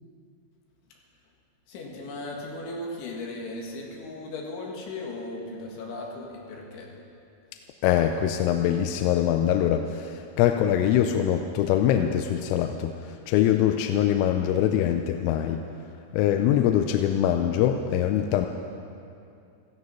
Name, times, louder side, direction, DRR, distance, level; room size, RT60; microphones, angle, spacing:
voice 1, 1.7-6.9, left 2 dB, 70° left, -1 dB, 4.2 m, -37 dB
voice 2, 7.8-15.6 16.1-18.5, left 10 dB, 85° left, 5 dB, 3.2 m, -23 dB
16.0 x 14.0 x 5.7 m, 2.6 s
omnidirectional pair, 5.8 m